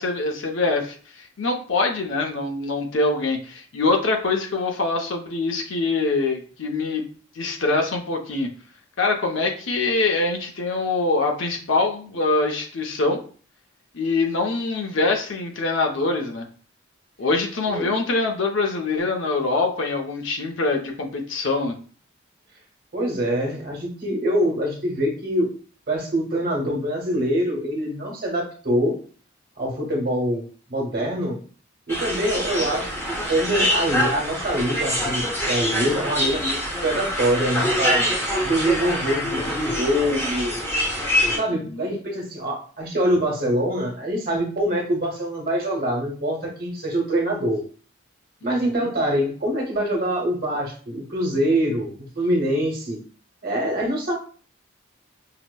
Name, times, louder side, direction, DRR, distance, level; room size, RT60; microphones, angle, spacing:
voice 1, 0.0-7.0 7.3-8.5 9.0-13.2 13.9-16.5 17.2-21.8 41.6-41.9 48.4-48.9, left 3 dB, 75° left, 2 dB, 0.7 m, -24 dB
voice 2, 22.9-25.5 25.9-29.0 29.6-30.4 30.7-31.4 31.9-32.9 33.3-38.1 38.4-40.5 41.4-47.6 48.4-53.0 53.4-54.1, right 1 dB, 45° right, 0 dB, 1.0 m, -24 dB
sound 1, 31.9-41.4, equal, 10° left, 0.7 m, -25 dB
5.7 x 2.0 x 2.2 m, 0.42 s
head